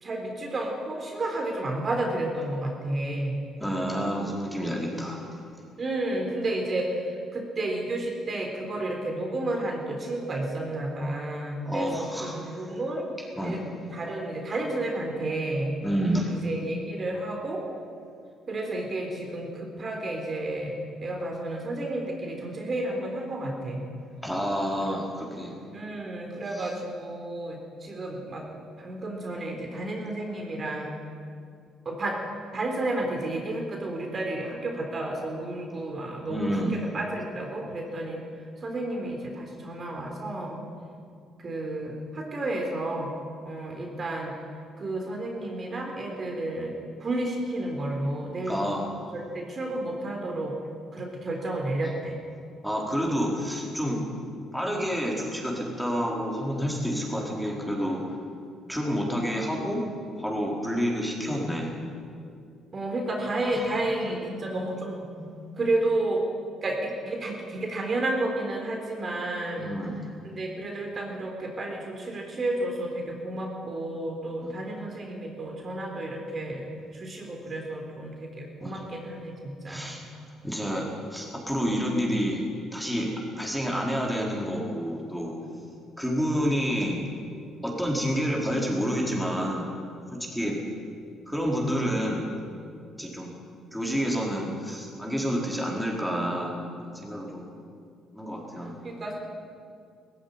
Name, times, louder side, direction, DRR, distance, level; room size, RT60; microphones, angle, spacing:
voice 1, 0.0-3.5 5.8-13.1 13.4-13.6 13.9-15.7 16.3-17.7 18.5-20.7 21.0-23.8 24.8-25.0 25.7-28.4 28.8-30.9 31.9-32.2 32.5-38.2 38.6-40.6 41.4-43.1 43.4-44.3 44.8-46.7 47.0-48.6 49.1-50.5 50.9-52.2 62.7-65.0 65.6-66.2 66.6-69.7 70.2-76.7 76.9-79.9 98.8-99.2, right 2 dB, 35° right, 1 dB, 3.9 m, -31 dB
voice 2, 3.6-5.2 11.6-12.6 13.4-13.6 15.8-16.4 24.2-25.5 26.5-26.7 36.3-36.7 48.5-48.8 52.6-54.0 54.5-58.0 58.7-59.8 60.2-61.7 63.4-64.0 64.4-64.5 65.1-65.3 69.6-70.1 74.4-74.6 78.6-78.8 79.6-80.1 80.4-82.4 82.7-83.1 83.4-85.3 86.0-87.0 87.6-89.7 90.1-90.6 91.3-92.2 93.0-93.3 93.7-97.5 98.1-98.9, equal, ahead, -2 dB, 4.6 m, -29 dB
17.5 x 15.5 x 9.8 m, 2.4 s
cardioid pair, 95°, 0 cm